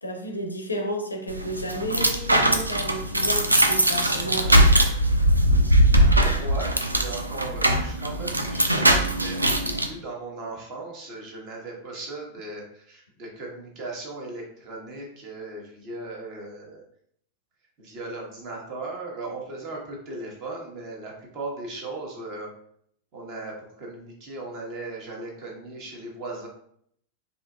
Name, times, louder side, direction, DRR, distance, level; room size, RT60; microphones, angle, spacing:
voice 1, 0.0-4.5, equal, 80° left, 3 dB, 0.5 m, -32 dB
sound 1, 1.3-9.9, right 1 dB, 85° right, 0.4 m, -21 dB
voice 2, 3.6-4.6 6.1-16.8 17.8-22.5 23.1-26.5, right 2 dB, 40° right, 0 dB, 1.1 m, -37 dB
4.1 x 2.7 x 2.3 m, 0.68 s
figure-of-eight pair, 90°, 0 cm